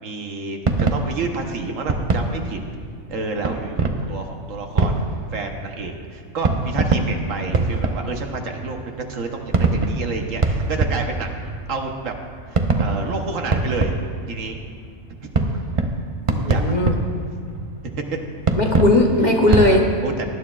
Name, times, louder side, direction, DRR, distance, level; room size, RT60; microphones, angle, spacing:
voice 1, 0.0-2.6 3.1-5.0 5.3-8.8 9.1-12.1 12.5-13.9 14.3-14.6 15.2-15.3 16.3-16.6 19.5-20.3, right 3 dB, 75° right, 3 dB, 1.4 m, -29 dB
sound 1, 0.7-19.7, right 3 dB, 35° right, 0.5 m, -24 dB
voice 2, 16.3-17.0 18.6-19.8, left 1 dB, 40° left, 0 dB, 1.0 m, -18 dB
19.0 x 11.0 x 2.4 m, 2.1 s
omnidirectional pair, 1.4 m